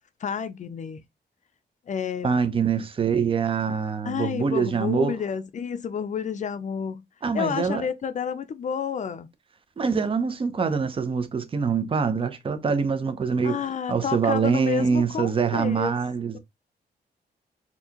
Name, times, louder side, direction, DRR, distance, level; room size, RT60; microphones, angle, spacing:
voice 1, 0.2-1.0 1.9-2.3 4.0-7.0 7.3-9.3 13.4-15.9 16.3-16.4, left 7 dB, 45° left, 0.5 m, -30 dB
voice 2, 2.2-5.2 7.2-7.9 9.8-16.4, right 5 dB, 30° right, 0.6 m, -24 dB
4.4 x 2.8 x 2.9 m
wide cardioid pair, 170°, 18 cm